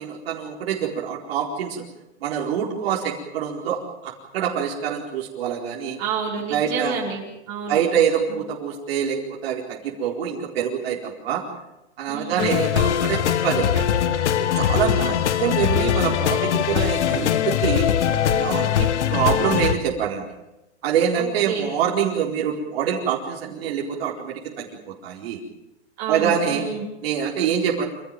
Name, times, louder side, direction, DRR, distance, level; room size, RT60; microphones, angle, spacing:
voice 1, 0.0-1.8 2.2-6.0 6.5-7.0 7.7-11.4 12.0-13.9 14.5-17.9 18.3-20.3 20.8-24.7 25.0-25.4 26.1-26.6 27.0-27.8, right 8 dB, 55° right, -2 dB, 4.6 m, -25 dB
voice 2, 6.0-7.8 8.3-8.4 12.1-12.5 14.7-14.9 21.2-21.7 26.0-26.9, right 6 dB, 40° right, -2 dB, 5.3 m, -29 dB
sound 1, 12.4-19.8, left 9 dB, 80° left, 1.8 m, -21 dB
27.0 x 16.5 x 9.1 m, 0.94 s
hypercardioid pair, 155°, 35 cm